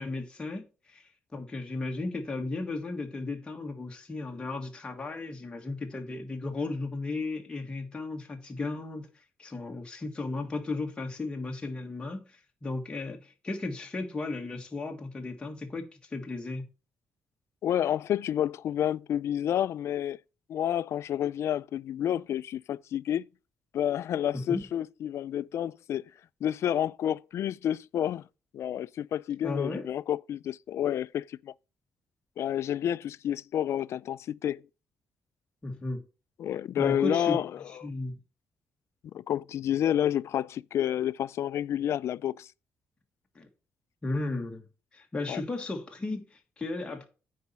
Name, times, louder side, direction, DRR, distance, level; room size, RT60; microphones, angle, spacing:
voice 1, 0.0-9.1 9.4-15.8 16.1-16.6 24.3-24.6 29.4-29.9 35.6-36.0 36.8-37.4 37.7-38.1 43.3-43.5 44.0-44.6 44.9-47.0, left 3 dB, 20° left, 1.5 m, -35 dB
voice 2, 17.6-20.2 20.5-23.3 23.7-26.0 26.4-28.2 28.5-31.5 32.4-34.6 36.4-37.5 39.1-42.5 45.3-45.4, left 10 dB, 65° left, 0.3 m, -29 dB
9.4 x 4.1 x 5.5 m
cardioid pair, 125°, 5 cm